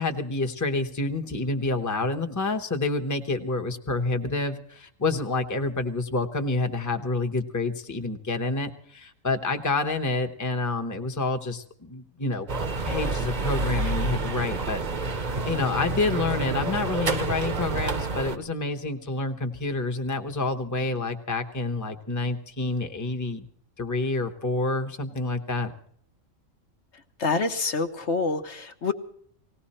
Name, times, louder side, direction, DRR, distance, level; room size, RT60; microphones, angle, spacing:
voice 1, 0.0-12.5 12.9-23.5 23.8-25.7, left 3 dB, 15° left, 5 dB, 1.0 m, -28 dB
sound 1, 12.5-18.4, right 3 dB, 40° right, 0.9 m, -28 dB
voice 2, 27.2-28.9, left 4 dB, 60° left, 6 dB, 1.2 m, -26 dB
19.0 x 16.5 x 4.3 m, 0.62 s
omnidirectional pair, 1.4 m